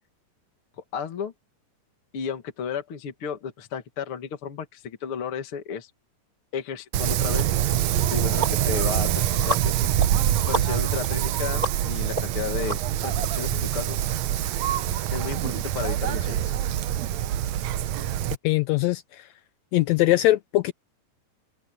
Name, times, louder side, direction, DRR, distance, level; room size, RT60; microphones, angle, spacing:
voice 1, 0.9-1.3 2.1-5.9 6.5-9.9 10.5-14.0 15.1-16.5, left 7 dB, 45° left, 2.3 m, -33 dB
Wind, 6.9-18.4, right 12 dB, 70° right, 1.7 m, -25 dB
sound 1, 7.4-7.5 7.9-13.3, right 2 dB, 25° right, 3.1 m, -33 dB
voice 2, 18.4-19.0 19.7-20.7, left 16 dB, 85° left, 1.5 m, -21 dB
omnidirectional pair, 3.9 m